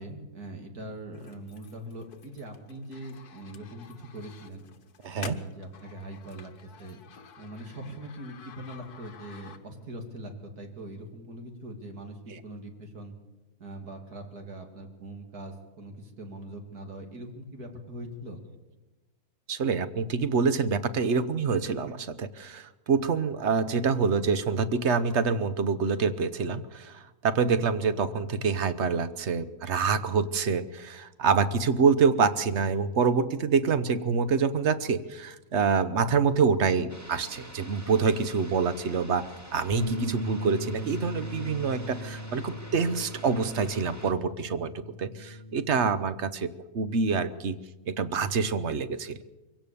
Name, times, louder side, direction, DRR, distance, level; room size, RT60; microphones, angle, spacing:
voice 1, 0.0-4.6 5.2-7.0 7.4-13.1 13.6-18.4, right 1 dB, 80° right, 4 dB, 3.1 m, -42 dB
sound 1, 1.1-10.0, left 7 dB, 85° left, 1.7 m, -49 dB
voice 2, 5.0-5.4 12.3-12.4 19.5-47.6 47.9-49.2, right 5 dB, 50° right, 13 dB, 1.2 m, -26 dB
sound 2, 36.9-44.1, equal, 10° right, 1.9 m, -47 dB
Bass guitar, 39.7-46.0, equal, 20° left, 0.9 m, -39 dB
24.5 x 16.5 x 7.0 m, 1.1 s
omnidirectional pair, 1.6 m